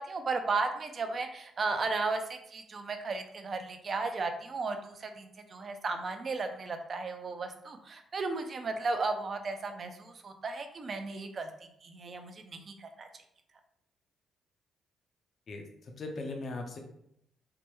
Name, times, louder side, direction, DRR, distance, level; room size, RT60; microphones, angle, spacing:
voice 1, 0.0-11.5 11.8-13.1, right 3 dB, 45° right, 6 dB, 0.4 m, -35 dB
voice 2, 15.5-16.8, left 2 dB, 50° left, 3 dB, 0.6 m, -39 dB
3.3 x 2.1 x 3.0 m, 0.74 s
cardioid pair, 90°, 0 cm